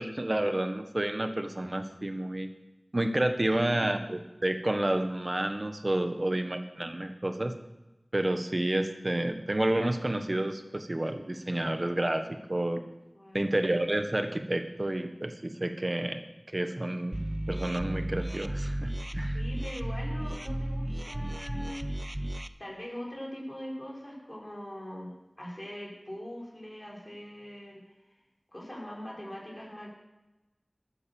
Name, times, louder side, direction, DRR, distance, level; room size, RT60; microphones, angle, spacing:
voice 1, 0.0-2.5 2.9-7.5 8.1-12.8 13.3-16.2 16.5-17.2 17.5-19.4, right 1 dB, 45° right, 7 dB, 1.4 m, -30 dB
voice 2, 3.5-3.9 6.1-6.5 12.3-12.6 13.1-13.6 19.0-22.1 22.6-28.2 28.5-29.9, equal, 25° left, -3 dB, 5.2 m, -42 dB
sound 1, 17.1-22.5, right 1 dB, 20° right, 0.7 m, -34 dB
13.0 x 8.7 x 7.2 m, 1.0 s
wide cardioid pair, 45°, 0 cm